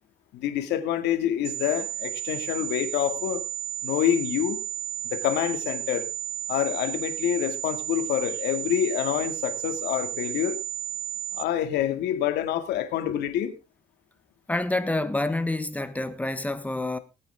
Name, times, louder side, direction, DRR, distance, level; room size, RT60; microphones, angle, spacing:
voice 1, 0.3-3.4 3.8-4.6 5.1-6.1 6.5-10.6 11.3-13.6, left 11 dB, 80° left, 2.4 m, -27 dB
sound 1, 1.4-11.4, right 11 dB, 35° right, 0.6 m, -33 dB
voice 2, 14.5-17.0, left 2 dB, 10° left, 1.5 m, -27 dB
19.5 x 9.1 x 3.7 m
cardioid pair, 110°, 17 cm